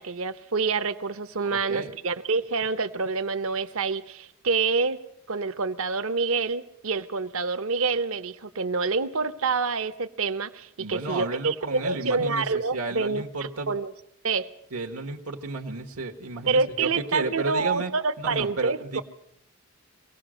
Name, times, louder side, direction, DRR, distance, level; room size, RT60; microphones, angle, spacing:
voice 1, 0.0-5.0 5.3-13.9 14.2-14.5 16.5-19.0, right 4 dB, 70° right, 11 dB, 0.9 m, -27 dB
voice 2, 1.4-1.9 10.8-13.7 14.7-17.9 18.2-19.0, right 3 dB, 85° right, 3 dB, 1.5 m, -32 dB
24.5 x 17.5 x 6.3 m, 0.74 s
head